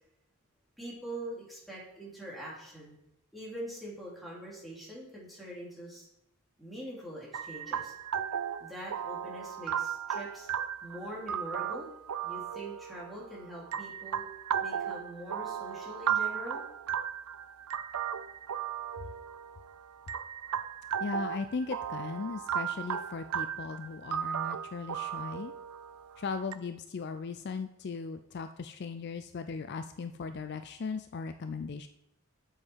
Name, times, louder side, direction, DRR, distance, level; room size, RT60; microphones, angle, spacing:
voice 1, 0.8-3.0 3.3-6.1 6.6-7.9 8.6-10.5 10.8-11.9 12.2-14.2 14.6-16.6, right 1 dB, ahead, -6 dB, 2.8 m, -43 dB
sound 1, 7.3-26.5, right 8 dB, 85° right, 0.5 m, -36 dB
voice 2, 21.0-25.5 26.2-31.9, left 4 dB, 50° left, 9 dB, 0.4 m, -38 dB
7.9 x 7.4 x 4.6 m, 0.83 s
head